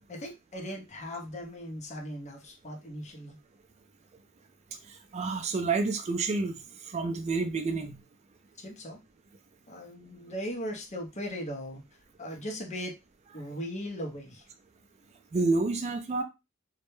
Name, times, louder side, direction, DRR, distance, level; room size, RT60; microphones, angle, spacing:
voice 1, 0.1-3.4 8.6-9.0 9.7-11.8 12.2-12.9 13.3-14.4, equal, 35° left, 1 dB, 0.6 m, -38 dB
voice 2, 4.9-6.6 6.9-8.0 15.3-16.2, right 3 dB, 35° right, 6 dB, 0.3 m, -29 dB
2.2 x 2.0 x 3.0 m, 0.24 s
head